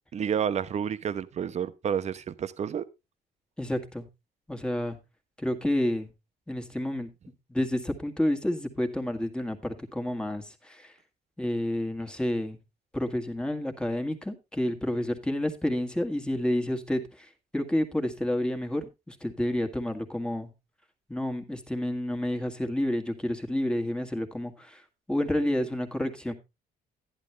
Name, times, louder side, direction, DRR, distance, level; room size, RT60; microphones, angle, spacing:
voice 1, 0.1-2.8, right 8 dB, 40° right, 0.9 m, -30 dB
voice 2, 3.6-4.1 4.5-5.0 5.4-6.1 6.5-7.1 7.5-10.9 11.4-12.6 12.9-20.5 21.1-24.8 25.1-26.3, left 1 dB, 5° left, 1.9 m, -30 dB
11.5 x 10.5 x 3.3 m
cardioid pair, 110°, 17 cm